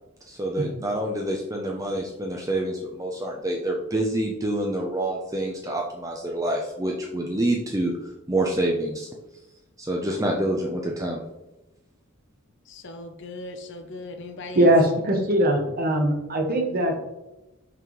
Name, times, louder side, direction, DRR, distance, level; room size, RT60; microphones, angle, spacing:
voice 1, 0.3-9.1 9.8-11.2, right 1 dB, 15° right, 0 dB, 0.5 m, -27 dB
voice 2, 12.7-14.7, left 2 dB, 55° left, 7 dB, 0.7 m, -38 dB
voice 3, 14.5-17.0, right 1 dB, 40° right, 3 dB, 1.1 m, -21 dB
5.8 x 5.4 x 3.1 m, 1.0 s
head